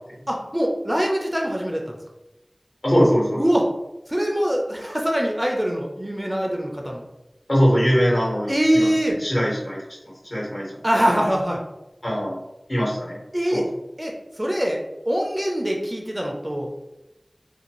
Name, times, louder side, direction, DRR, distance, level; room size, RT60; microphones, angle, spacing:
voice 1, 0.3-1.9 3.4-3.6 4.1-7.0 8.5-9.2 10.8-11.6 13.3-13.6 14.0-14.1 14.4-14.8 15.1-16.9, equal, 20° right, 0 dB, 0.4 m, -23 dB
voice 2, 2.8-3.4 7.5-8.9 9.2-9.8 10.3-10.7 12.0-12.4 12.7-13.2 13.5-13.6, equal, 55° left, -5 dB, 1.2 m, -21 dB
2.6 x 2.3 x 2.9 m, 0.94 s
wide cardioid pair, 45°, 0 cm